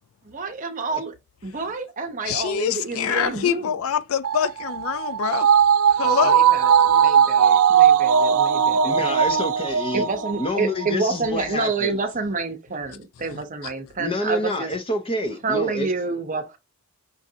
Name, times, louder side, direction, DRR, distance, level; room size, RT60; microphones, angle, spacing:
voice 1, 0.2-1.1 1.4-3.8 6.0-9.1 9.9-14.7 15.4-16.6, right 4 dB, 35° right, 0.7 m, -28 dB
voice 2, 2.3-5.5 6.0-6.4 13.3-13.4, left 8 dB, 70° left, 0.4 m, -25 dB
sound 1, 4.2-10.9 11.2-11.3, right 8 dB, 80° right, 0.4 m, -18 dB
voice 3, 8.8-10.1 10.4-12.0 14.0-15.9, left 1 dB, 25° left, 0.6 m, -27 dB
5.9 x 2.5 x 2.7 m
head